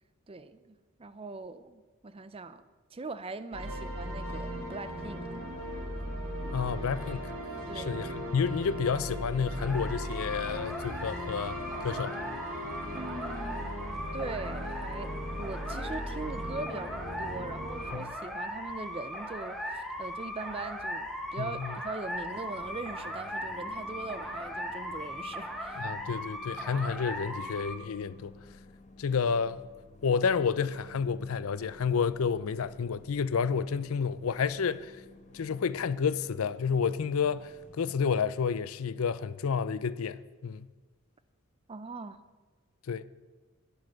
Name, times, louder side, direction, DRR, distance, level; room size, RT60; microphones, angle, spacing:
voice 1, 0.3-2.6 2.9-5.5 7.7-8.0 12.9-13.7 14.1-15.1 15.4-25.9 41.7-42.2, right 3 dB, 25° right, 0.5 m, -41 dB
sound 1, 3.5-17.9, equal, 70° right, 2.8 m, -38 dB
voice 2, 6.5-7.3 7.8-11.6 11.8-12.1 17.9-18.1 21.4-21.7 25.8-28.3 29.0-29.6 30.0-35.0 35.3-40.7 42.9-43.0, left 6 dB, 75° left, 0.5 m, -30 dB
sound 2, 9.6-27.8, equal, ahead, 1.0 m, -39 dB
sound 3, 22.2-38.0, left 2 dB, 35° left, 1.1 m, -54 dB
11.0 x 9.7 x 6.3 m
head